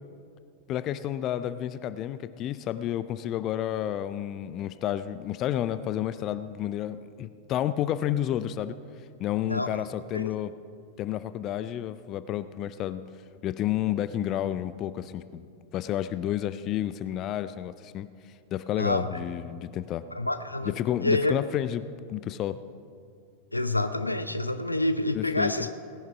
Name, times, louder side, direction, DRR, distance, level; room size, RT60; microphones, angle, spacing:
voice 1, 0.7-8.8 9.2-10.5 11.0-13.0 13.4-15.4 15.7-18.1 18.5-20.1 20.8-21.8 22.1-22.6 25.1-25.5, left 11 dB, 35° left, 14 dB, 0.5 m, -30 dB
voice 2, 9.4-9.8 10.1-10.3 18.8-19.1 20.1-20.7 21.0-21.4 23.5-25.8, left 1 dB, 85° left, 11 dB, 0.6 m, -27 dB
17.5 x 10.5 x 5.6 m, 2.4 s
figure-of-eight pair, 90°, 0 cm